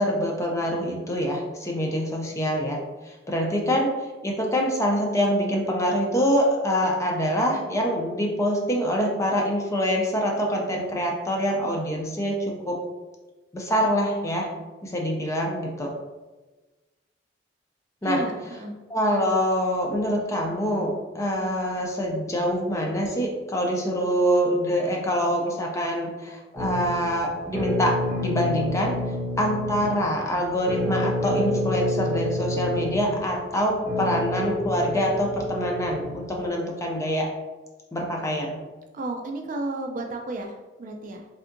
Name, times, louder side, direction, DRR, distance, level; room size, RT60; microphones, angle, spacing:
voice 1, 0.0-3.9 4.2-12.8 13.5-14.5 14.8-15.9 18.0-18.2 18.9-28.9 29.4-37.3 37.9-38.6, equal, 15° left, 0 dB, 0.4 m, -25 dB
voice 2, 18.0-18.7 38.9-41.3, right 2 dB, 45° right, 3 dB, 0.3 m, -32 dB
sound 1, 26.5-36.4, left 1 dB, 25° right, 1.1 m, -29 dB
3.3 x 2.7 x 2.5 m, 1.2 s
head